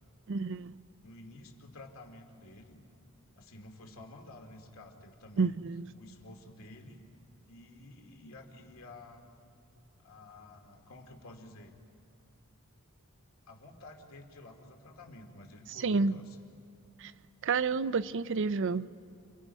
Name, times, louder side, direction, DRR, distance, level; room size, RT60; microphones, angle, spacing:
voice 1, 0.3-0.7 5.4-5.8 15.8-16.2 17.0-17.1 17.4-18.9, right 4 dB, 60° right, 0.5 m, -29 dB
voice 2, 1.0-2.9 3.3-5.6 5.9-7.0 7.5-9.2 10.0-11.7 13.5-16.4, left 2 dB, 65° left, 2.6 m, -51 dB
29.5 x 28.5 x 5.5 m
head